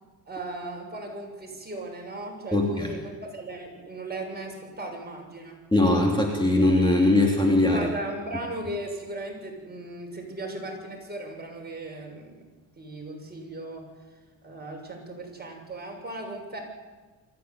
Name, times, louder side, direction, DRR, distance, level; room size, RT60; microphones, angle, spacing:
voice 1, 0.3-5.6 7.7-12.5 12.8-13.9 14.4-16.6, right 1 dB, 25° right, 1 dB, 7.0 m, -37 dB
voice 2, 2.5-2.9 5.7-7.9, left 2 dB, 10° left, -1 dB, 3.3 m, -21 dB
23.5 x 15.5 x 9.8 m, 1.3 s
cardioid pair, 115°, 38 cm